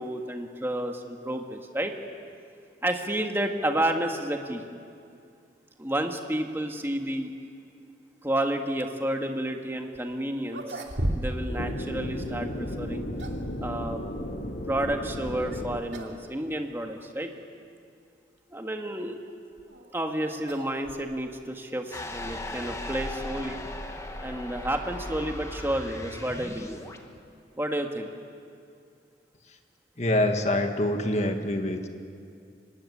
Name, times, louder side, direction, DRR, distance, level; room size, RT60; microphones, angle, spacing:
voice 1, 0.0-1.9 2.8-4.6 5.8-7.3 8.2-10.8 11.1-13.1 13.6-14.0 14.7-17.3 18.5-19.2 19.9-23.6 24.2-26.8 27.6-28.1, right 1 dB, 15° right, 3 dB, 1.7 m, -30 dB
sound 1, 9.9-10.0 10.4-11.6 11.8-11.9 12.8-13.5 15.3-15.6 15.9-16.2 16.5-16.6 17.4-17.5 19.3-21.4, right 1 dB, 70° right, 2.5 m, -35 dB
sound 2, 11.5-15.8, left 1 dB, 55° left, 2.2 m, -34 dB
sound 3, 21.9-27.0, left 1 dB, 15° left, 1.5 m, -37 dB
voice 2, 30.0-31.9, left 1 dB, 40° left, 5 dB, 1.8 m, -25 dB
25.0 x 18.0 x 9.9 m, 2.4 s
head